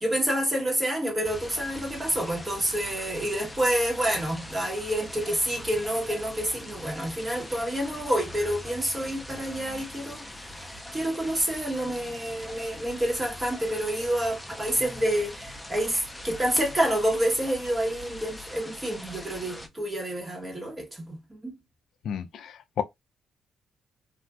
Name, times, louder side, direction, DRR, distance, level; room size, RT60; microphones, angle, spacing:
voice 1, 0.0-10.2 10.6-21.5, right 1 dB, 20° right, 1.1 m, -28 dB
sound 1, 1.2-19.7, left 1 dB, 5° left, 0.6 m, -42 dB
voice 2, 22.0-22.8, left 8 dB, 70° left, 0.4 m, -32 dB
3.4 x 2.4 x 2.3 m
cardioid pair, 90°, 0 cm